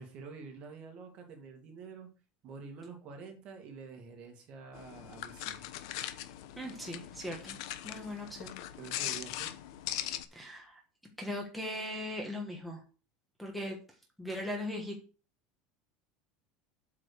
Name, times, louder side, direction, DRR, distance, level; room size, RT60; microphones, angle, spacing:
voice 1, 0.0-2.1 2.4-5.7 8.8-9.6, right 5 dB, 35° right, 3 dB, 2.3 m, -48 dB
sound 1, 4.7-10.2, left 12 dB, 65° left, 0.9 m, -40 dB
voice 2, 6.6-7.6 7.8-8.6 10.3-10.8 11.2-12.8 13.4-13.8 14.2-15.0, left 1 dB, ahead, 1 dB, 1.3 m, -39 dB
8.3 x 5.1 x 6.5 m, 0.36 s
cardioid pair, 170°, 3 cm